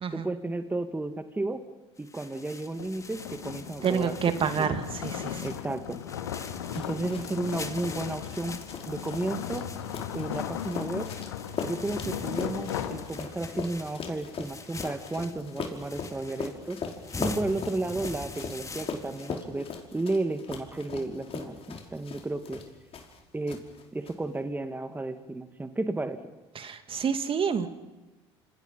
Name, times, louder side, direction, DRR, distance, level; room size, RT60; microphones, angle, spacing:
voice 1, 0.1-1.6 2.0-4.1 4.6-4.8 5.4-6.0 6.7-9.7 10.1-11.1 11.6-16.8 17.2-22.7 23.3-23.6 23.9-26.2, right 2 dB, 15° right, 8 dB, 2.2 m, -33 dB
sound 1, 2.0-19.3, left 3 dB, 20° left, 2.2 m, -44 dB
sound 2, 2.7-13.7, left 10 dB, 80° left, 1.8 m, -37 dB
voice 2, 3.8-5.5 26.5-27.7, right 7 dB, 40° right, 8 dB, 2.4 m, -28 dB
sound 3, 6.4-23.2 23.5-24.1, left 5 dB, 40° left, 5.4 m, -40 dB
29.0 x 28.0 x 5.7 m, 1.1 s
hypercardioid pair, 65°, 14 cm